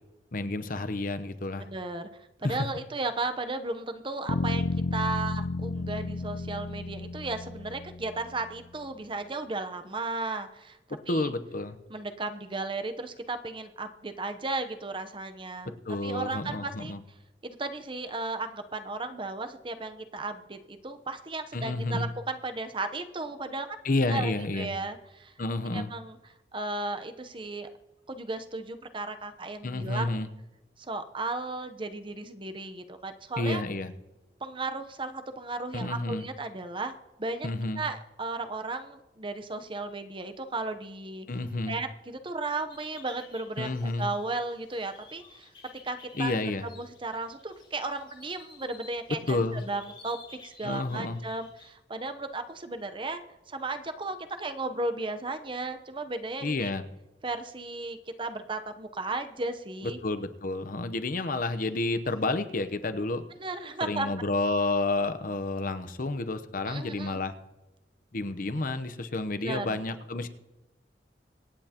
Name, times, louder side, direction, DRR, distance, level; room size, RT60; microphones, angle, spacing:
voice 1, 0.3-1.7 2.4-2.6 11.1-11.8 15.9-17.0 21.5-22.1 23.8-24.7 25.4-25.9 29.6-30.3 33.4-33.9 35.7-36.3 37.4-37.9 41.3-41.8 43.6-44.1 46.2-46.7 49.3-49.6 50.6-51.2 56.4-56.8 60.0-63.2 63.8-67.3 68.1-70.3, left 2 dB, 50° left, 11 dB, 0.8 m, -30 dB
voice 2, 1.5-10.8 11.1-11.3 11.9-15.8 16.0-16.9 17.4-23.8 24.1-25.3 25.7-26.2 26.5-27.7 28.1-30.2 30.8-33.6 34.4-36.9 37.2-37.5 37.8-41.3 41.7-43.7 44.0-45.5 45.8-53.2 53.5-56.7 57.2-60.0 63.4-64.3 66.6-67.2 69.4-69.8, right 3 dB, 30° right, 8 dB, 0.8 m, -35 dB
sound 1, 4.3-8.3, left 3 dB, 80° left, 0.5 m, -32 dB
sound 2, 42.7-51.7, left 4 dB, 30° left, 3.0 m, -53 dB
25.5 x 9.0 x 2.9 m, 1.0 s
head